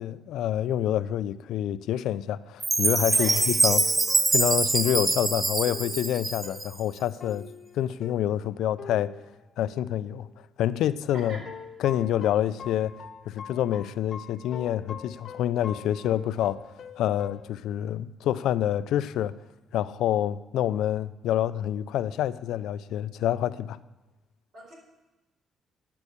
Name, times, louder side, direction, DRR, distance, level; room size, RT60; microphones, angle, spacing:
voice 1, 0.0-3.9 4.3-7.5 7.7-9.1 9.6-10.3 10.6-11.4 11.8-13.0 13.3-16.6 17.0-19.4 19.7-23.8, left 11 dB, 85° left, 0.3 m, -27 dB
Chime, 2.6-6.8, right 3 dB, 25° right, 0.4 m, -24 dB
voice 2, 3.1-3.8 11.1-11.4 24.5-24.7, right 2 dB, 65° right, 4.4 m, -40 dB
sound 1, 3.7-10.3 11.4-17.5, left 7 dB, 55° left, 0.8 m, -44 dB
11.0 x 5.6 x 8.2 m
cardioid pair, 90°, 0 cm